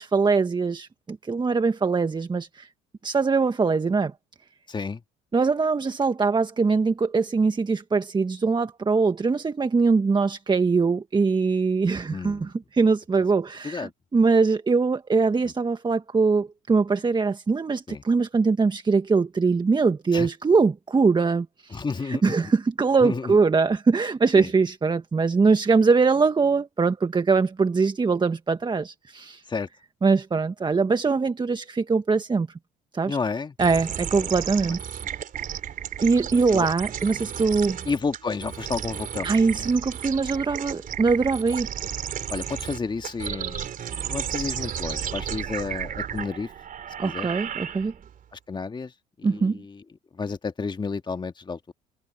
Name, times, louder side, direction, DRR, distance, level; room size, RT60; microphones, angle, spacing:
voice 1, 0.0-2.7 3.0-4.1 5.3-29.4 30.0-32.5 32.9-33.2 33.6-34.8 36.0-37.8 39.2-41.7 47.0-47.9 49.2-49.6, right 4 dB, 25° right, 1.5 m, -22 dB
voice 2, 4.7-5.0 12.1-12.5 13.6-13.9 15.4-15.5 17.9-18.0 20.1-20.3 21.7-22.4 23.0-23.4 24.4-24.5 29.5-29.7 33.1-33.5 34.2-34.3 36.5-36.7 37.9-39.3 42.3-43.7 44.0-46.5 47.0-47.3 48.3-48.9 49.2-49.8 50.1-51.7, left 4 dB, 25° left, 1.8 m, -31 dB
sound 1, 33.6-48.1, right 9 dB, 50° right, 3.9 m, -33 dB
hypercardioid pair, 70°, 18 cm